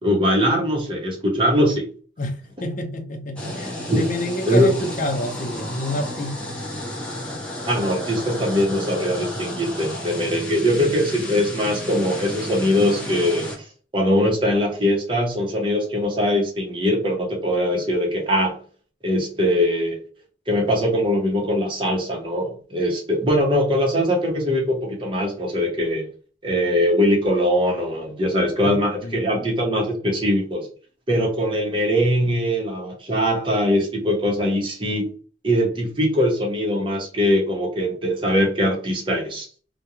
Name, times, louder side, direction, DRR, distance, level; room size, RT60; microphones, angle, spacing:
voice 1, 0.0-1.9 3.9-4.0 4.5-4.7 7.7-13.6 13.9-18.6 19.0-20.0 20.5-26.1 26.4-30.7 31.1-35.1 35.4-39.5, equal, 30° right, 0.7 m, -21 dB
voice 2, 2.2-6.6 28.7-28.8 29.0-29.6, left 1 dB, 45° left, 0.5 m, -29 dB
sound 1, 3.4-13.6, left 1 dB, 5° left, 0.7 m, -32 dB
2.4 x 2.1 x 2.9 m
head